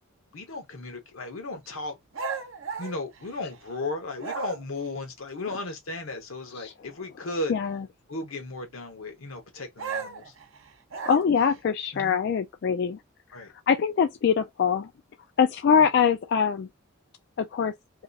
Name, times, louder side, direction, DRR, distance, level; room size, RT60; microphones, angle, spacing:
voice 1, 0.3-2.0 2.8-7.5 8.1-10.3 11.9-12.2 13.3-13.5, left 2 dB, 85° left, 1.0 m, -35 dB
sound 1, 2.1-3.7 4.2-4.9 9.8-11.6, right 5 dB, 70° right, 0.8 m, -36 dB
voice 2, 7.5-7.9 11.1-13.0 13.3-14.9 15.4-16.7 17.4-17.7, left 7 dB, 55° left, 0.3 m, -23 dB
2.8 x 2.3 x 3.9 m
head